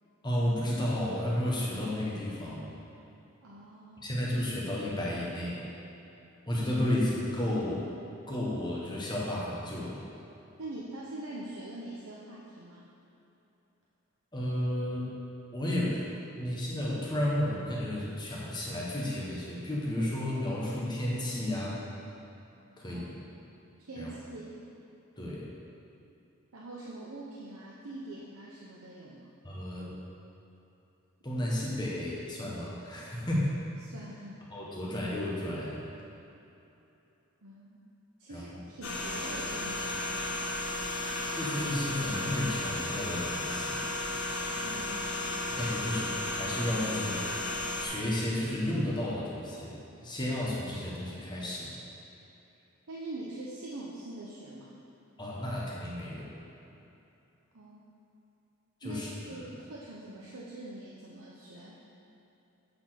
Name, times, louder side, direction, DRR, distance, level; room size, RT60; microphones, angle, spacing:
voice 1, 0.2-2.7 4.0-5.7 6.5-7.9 8.3-10.1 14.3-15.1 15.5-16.1 16.4-21.9 22.8-23.1 24.0-24.1 25.2-25.4 29.4-29.9 31.2-33.5 34.5-35.9 38.3-38.6 41.3-43.8 45.5-47.3 47.8-51.8 55.2-56.3 58.8-59.1, left 1 dB, 20° left, -5 dB, 1.3 m, -32 dB
voice 2, 3.4-4.2 10.6-12.9 22.9-23.0 23.8-24.6 26.5-29.3 33.8-34.5 37.4-37.8 38.2-40.4 44.6-45.3 52.9-54.7 57.5-57.9 58.8-61.8, right 2 dB, 90° right, -5 dB, 0.8 m, -44 dB
sound 1, 38.8-47.9, left 2 dB, 75° left, 1.3 m, -34 dB
8.5 x 4.4 x 5.8 m, 2.9 s
head